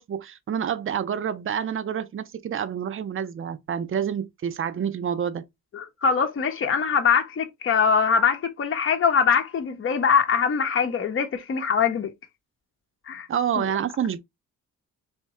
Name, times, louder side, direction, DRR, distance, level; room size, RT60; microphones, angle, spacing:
voice 1, 0.0-5.5 13.3-14.2, right 8 dB, 45° right, 0.6 m, -28 dB
voice 2, 5.7-12.1 13.1-13.3 13.6-13.7, left 6 dB, 45° left, 0.8 m, -22 dB
3.6 x 2.7 x 4.1 m
cardioid pair, 85°, 30 cm